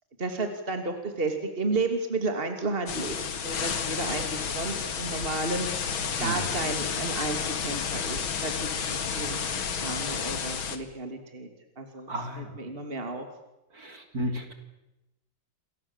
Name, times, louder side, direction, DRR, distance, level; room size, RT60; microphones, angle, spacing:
voice 1, 0.2-8.5 8.9-11.5 11.8-12.1 12.4-13.2, right 3 dB, 25° right, 6 dB, 3.0 m, -32 dB
sound 1, 2.9-10.8, left 6 dB, 85° left, 2.7 m, -31 dB
voice 2, 12.1-12.6 13.7-14.5, right 1 dB, 45° right, 6 dB, 3.7 m, -33 dB
29.0 x 23.5 x 7.4 m, 0.94 s
omnidirectional pair, 2.2 m